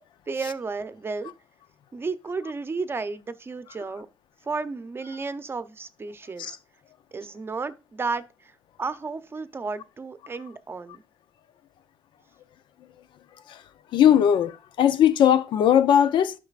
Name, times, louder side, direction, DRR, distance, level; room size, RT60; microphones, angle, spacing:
voice 1, 0.3-1.3 1.9-4.1 4.5-6.6 7.1-8.2 8.8-11.0, right 4 dB, 30° right, 0.7 m, -32 dB
voice 2, 13.9-14.5 14.8-16.3, left 9 dB, 75° left, 0.6 m, -18 dB
11.5 x 6.0 x 2.5 m
cardioid pair, 100°, 8 cm